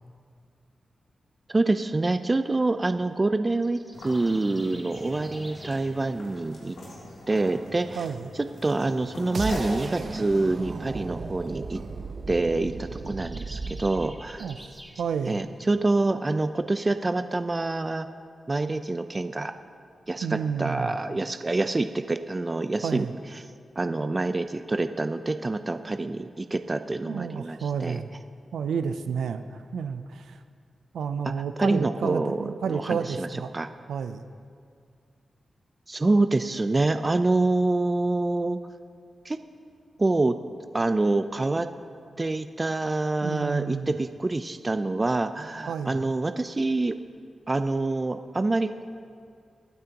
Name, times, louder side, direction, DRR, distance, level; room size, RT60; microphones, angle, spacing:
voice 1, 1.5-3.8 4.0-6.7 7.3-8.1 8.6-11.8 12.3-14.5 15.3-18.1 18.5-19.5 20.1-23.1 23.8-28.0 31.2-31.3 31.6-33.3 33.5-33.7 35.9-38.6 39.2-39.4 40.0-40.3 40.7-41.7 42.2-47.0 47.5-48.9, right 2 dB, 35° right, 9 dB, 0.5 m, -26 dB
sound 1, 3.5-5.8 12.4-15.0, right 1 dB, 10° right, 2.0 m, -48 dB
sound 2, 3.9-9.8, left 1 dB, 90° left, 3.0 m, -41 dB
voice 2, 8.0-8.3 14.4-14.7 15.0-15.4 20.2-20.9 22.8-23.1 27.1-28.1 28.5-30.4 30.9-33.5 33.9-34.2 43.2-43.9 45.7-46.1, right 6 dB, 85° right, 9 dB, 0.5 m, -30 dB
sound 3, 9.3-15.3, right 4 dB, 60° right, 0.9 m, -36 dB
25.0 x 8.8 x 3.0 m, 2.2 s
cardioid pair, 45°, 0 cm